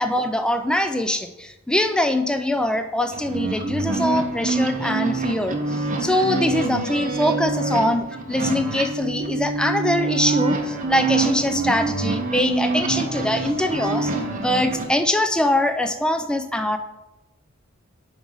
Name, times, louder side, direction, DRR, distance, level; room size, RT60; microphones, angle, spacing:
voice 1, 0.0-14.1 14.4-16.8, left 1 dB, 5° left, 7 dB, 0.4 m, -23 dB
sound 1, 3.1-14.9, right 3 dB, 40° right, 0.8 m, -26 dB
9.6 x 3.9 x 3.9 m, 0.97 s
head